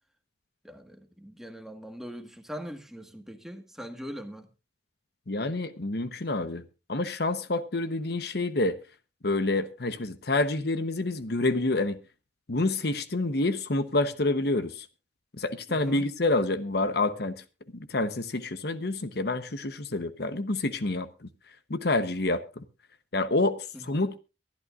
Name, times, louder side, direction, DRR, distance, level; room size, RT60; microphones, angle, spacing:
voice 1, 0.6-4.5 15.7-16.1 23.7-23.9, equal, ahead, 1.6 m, -41 dB
voice 2, 5.3-6.6 6.9-8.8 9.2-12.0 12.5-14.9 15.4-17.4 17.7-21.3 21.7-22.6 23.1-24.2, left 2 dB, 65° left, 1.0 m, -28 dB
23.5 x 12.0 x 2.5 m
head